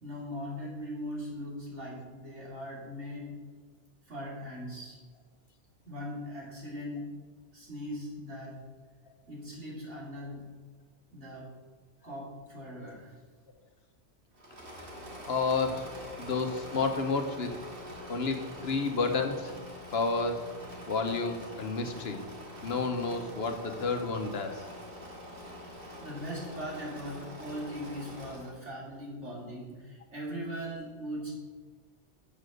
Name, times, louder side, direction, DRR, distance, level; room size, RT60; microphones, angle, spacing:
voice 1, 0.0-3.3 4.1-5.0 5.8-7.1 7.5-8.6 9.3-10.5 11.1-11.5 12.0-13.2 18.8-18.9 25.7-31.3, equal, 70° right, -5 dB, 3.4 m, -40 dB
Engine / Mechanisms, 14.3-28.6, equal, 50° right, 2.1 m, -45 dB
voice 2, 15.3-15.9 16.2-17.5 18.1-19.5 19.9-20.4 20.9-22.2 22.6-24.6, left 4 dB, 60° left, 6 dB, 1.1 m, -30 dB
7.6 x 7.1 x 6.4 m, 1.5 s
omnidirectional pair, 1.2 m